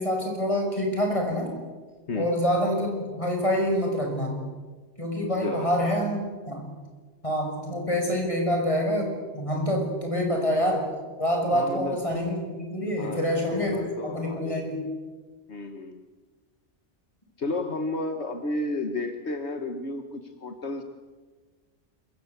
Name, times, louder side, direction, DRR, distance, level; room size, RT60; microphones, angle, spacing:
voice 1, 0.0-1.5 2.1-4.4 5.0-6.8 7.2-10.9 11.2-14.8, equal, 30° left, 2 dB, 6.4 m, -26 dB
voice 2, 5.4-5.8 11.5-12.2 13.0-14.9 15.5-16.0 17.4-20.8, left 2 dB, 70° left, 6 dB, 1.9 m, -32 dB
27.0 x 24.0 x 8.3 m, 1.4 s
omnidirectional pair, 1.2 m